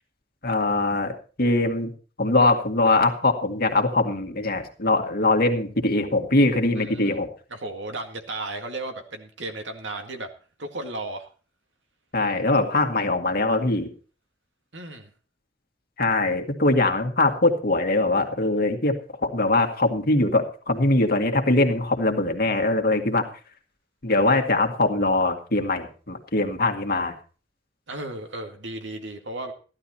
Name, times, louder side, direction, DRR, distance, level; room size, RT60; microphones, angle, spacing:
voice 1, 0.4-1.9 2.2-7.3 12.1-13.9 16.0-18.9 19.2-23.3 24.0-27.1, left 2 dB, 55° left, 4 dB, 2.0 m, -22 dB
voice 2, 6.8-7.2 7.5-10.3 10.6-11.3 14.7-15.1 27.9-29.5, right 2 dB, 80° right, 5 dB, 2.1 m, -34 dB
15.5 x 11.5 x 4.3 m, 0.37 s
head